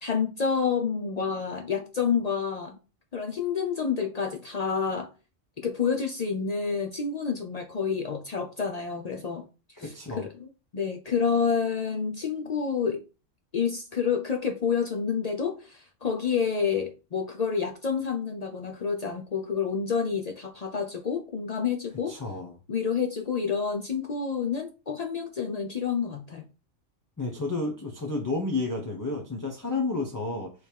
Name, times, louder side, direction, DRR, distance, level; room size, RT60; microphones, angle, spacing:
voice 1, 0.0-2.8 3.1-5.1 5.6-9.5 9.8-13.0 13.5-22.1 22.7-26.5, left 6 dB, 65° left, 0.4 m, -29 dB
voice 2, 9.8-10.2 22.1-22.6 27.2-30.5, left 3 dB, 20° left, 0.6 m, -31 dB
3.4 x 3.3 x 4.4 m
omnidirectional pair, 1.3 m